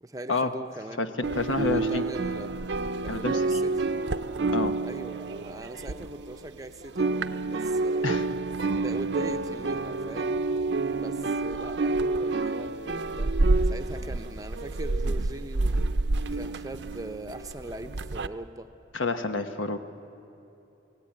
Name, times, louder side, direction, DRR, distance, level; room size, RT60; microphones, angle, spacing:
voice 1, 0.0-1.1 1.5-2.5 3.0-3.8 4.8-8.1 8.6-10.4 10.9-13.3 13.6-15.8 16.3-18.7, right 1 dB, 20° right, 7 dB, 0.7 m, -40 dB
sound 1, 1.2-6.6 6.8-18.3, right 3 dB, 65° right, 0.6 m, -28 dB
voice 2, 1.3-2.0 3.1-3.4 4.5-4.7 8.0-8.2 8.6-8.7 18.9-19.8, left 3 dB, 90° left, 7 dB, 1.2 m, -28 dB
27.5 x 17.5 x 8.7 m, 2.9 s
head